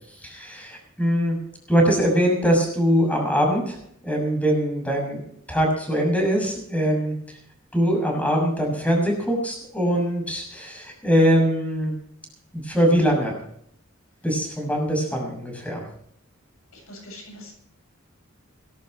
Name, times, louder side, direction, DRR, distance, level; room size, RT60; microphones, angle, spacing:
voice 1, 0.1-1.4 1.7-3.8 4.0-5.2 5.5-7.4 7.7-12.0 12.5-13.4 14.2-15.8, equal, 5° left, 1 dB, 6.6 m, -22 dB
voice 2, 16.7-17.5, left 1 dB, 85° left, 3 dB, 7.7 m, -42 dB
19.0 x 17.0 x 3.3 m, 0.69 s
head